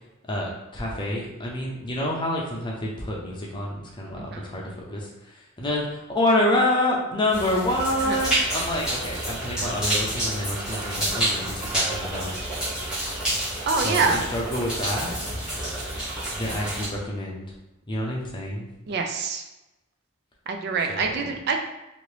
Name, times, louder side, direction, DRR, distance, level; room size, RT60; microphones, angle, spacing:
voice 1, 0.3-12.4 13.8-15.2 16.4-17.4 17.9-18.7 20.9-21.1, left 1 dB, 25° left, -2 dB, 0.6 m, -27 dB
sound 1, 7.3-16.9, right 1 dB, 5° right, 1.0 m, -29 dB
voice 2, 13.7-14.2 18.9-19.4 20.5-21.6, right 4 dB, 50° right, 4 dB, 0.3 m, -25 dB
2.8 x 2.6 x 3.2 m, 0.98 s
head